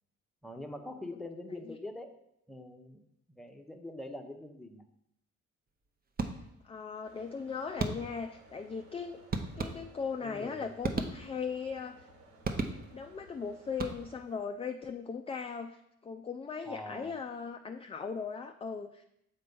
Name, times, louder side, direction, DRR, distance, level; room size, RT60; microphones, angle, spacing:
voice 1, 0.4-2.1 2.5-3.0 3.3-4.8 10.2-10.7 16.7-17.1, left 1 dB, ahead, 4 dB, 0.8 m, -43 dB
sound 1, 6.2-6.7 7.8-8.3 9.3-10.2 10.8-11.6 12.4-13.1 13.7-14.3, right 4 dB, 30° right, 0.7 m, -36 dB
voice 2, 6.6-9.2 9.6-12.1 12.9-19.0, left 5 dB, 20° left, 6 dB, 0.4 m, -38 dB
sound 2, 7.0-14.2, right 2 dB, 65° right, 1.4 m, -58 dB
6.7 x 4.3 x 5.3 m, 0.79 s
cardioid pair, 90°, 30 cm